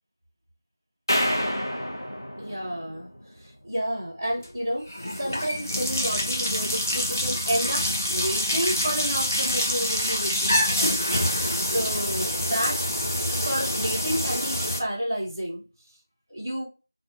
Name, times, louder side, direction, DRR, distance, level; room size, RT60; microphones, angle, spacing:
sound 1, 1.1-3.4, equal, 75° left, 0.9 m, -28 dB
voice 1, 2.4-3.1 3.4-4.9 5.2-11.0 11.6-12.8 13.3-15.6 16.3-16.6, equal, 5° right, -13 dB, 0.8 m, -30 dB
sound 2, 4.3-4.5 4.9-14.8, left 1 dB, 45° left, 0.6 m, -26 dB
2.5 x 2.5 x 2.5 m, 0.30 s
figure-of-eight pair, 175°, 2 cm